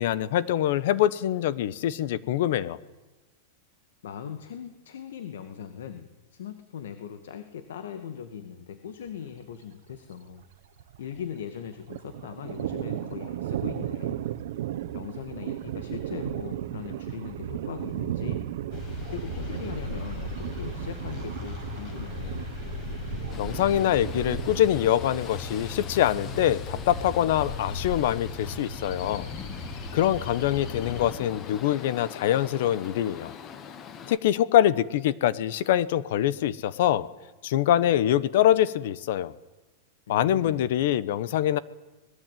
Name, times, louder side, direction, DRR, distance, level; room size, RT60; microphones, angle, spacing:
voice 1, 0.0-2.8 23.4-29.3 29.9-33.3 34.1-37.1 37.4-39.3 40.1-41.6, left 11 dB, 55° left, 18 dB, 1.1 m, -24 dB
voice 2, 4.0-10.5 11.0-14.2 14.9-18.5 19.1-22.4 40.1-40.7, left 8 dB, 85° left, 9 dB, 2.2 m, -40 dB
Thunder, 9.1-9.2 9.5-9.6 9.9-11.4 11.7-24.7, right 12 dB, 60° right, 1.4 m, -35 dB
sound 1, 18.7-31.1, left 3 dB, 35° left, 6.5 m, -37 dB
sound 2, 23.3-34.2, left 7 dB, 20° left, 1.4 m, -43 dB
26.0 x 20.0 x 9.4 m, 1.1 s
supercardioid pair, 170°, 0 cm